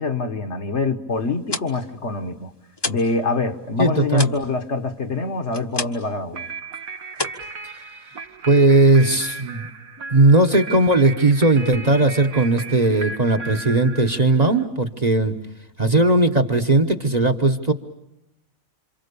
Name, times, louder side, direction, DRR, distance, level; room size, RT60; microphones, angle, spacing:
voice 1, 0.0-2.5 2.9-6.5, left 3 dB, 55° left, 6 dB, 1.7 m, -25 dB
sound 1, 1.3-3.2 3.5-6.2 6.5-6.8 7.1-8.2, left 2 dB, 20° left, 1.0 m, -31 dB
voice 2, 3.8-4.3 8.5-9.7 10.1-15.3 15.8-17.7, right 2 dB, 30° right, 7 dB, 1.2 m, -17 dB
sound 2, 6.3-14.6, right 4 dB, 80° right, 1.7 m, -36 dB
28.5 x 27.0 x 6.9 m, 0.92 s
omnidirectional pair, 1.5 m